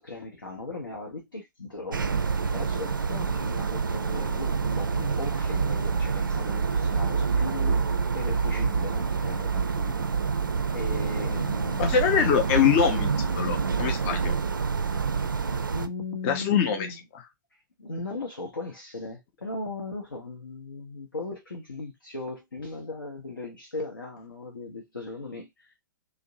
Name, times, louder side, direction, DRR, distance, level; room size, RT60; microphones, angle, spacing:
voice 1, 0.0-2.3 2.5-7.8 8.1-10.1 10.7-12.1 15.1-15.4 15.7-17.0 17.5-25.8, left 3 dB, 75° left, 0.6 m, -38 dB
sound 1, 1.9-15.9, right 5 dB, 75° right, 0.4 m, -27 dB
voice 2, 11.8-13.1 13.3-14.4 16.2-16.9, left 7 dB, 35° left, 0.5 m, -23 dB
2.5 x 2.0 x 2.6 m
figure-of-eight pair, 110°, 11 cm